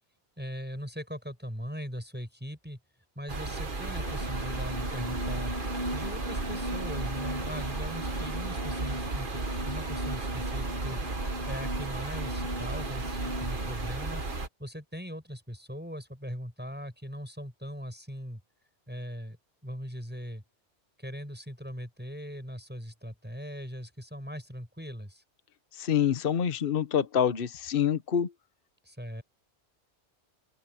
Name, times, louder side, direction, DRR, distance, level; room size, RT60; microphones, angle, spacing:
voice 1, 0.4-2.8 3.1-5.5 5.9-11.0 11.5-14.2 14.6-18.4 18.9-19.4 19.6-20.4 21.0-25.2 28.8-29.2, equal, 10° right, 6.4 m, -40 dB
sound 1, 3.3-14.5, right 3 dB, 50° right, 1.8 m, -34 dB
sound 2, 3.8-13.9, equal, 35° left, 1.7 m, -39 dB
voice 2, 25.7-28.3, left 8 dB, 55° left, 1.1 m, -26 dB
open air
omnidirectional pair, 1.1 m